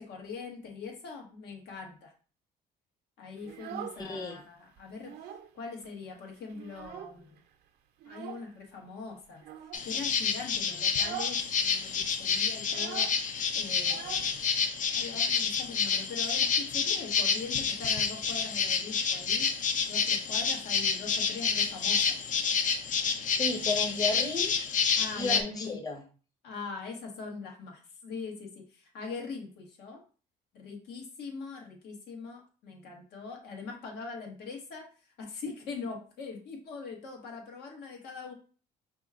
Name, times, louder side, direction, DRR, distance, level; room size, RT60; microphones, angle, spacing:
voice 1, 0.0-2.1 3.2-5.1 5.5-7.4 8.0-9.4 9.8-14.3 14.9-19.5 19.9-22.2 25.0-25.8 26.4-30.0 30.5-34.9 35.2-38.3, left 4 dB, 75° left, 1 dB, 1.4 m, -42 dB
Child speech kid speaking, 3.4-4.4 4.8-5.5 5.8-5.9 6.3-7.4 8.0-8.5 9.4-9.9 10.3-10.5 10.9-11.4 11.7-11.8 12.0-14.8, right 10 dB, 70° right, 0.6 m, -43 dB
voice 2, 4.0-4.4 23.4-24.5 25.2-26.0, left 2 dB, 20° left, 2 dB, 0.9 m, -33 dB
sound 1, 9.7-25.4, left 6 dB, 50° left, 0.6 m, -29 dB
5.1 x 2.3 x 3.6 m, 0.38 s
cardioid pair, 110°, 17 cm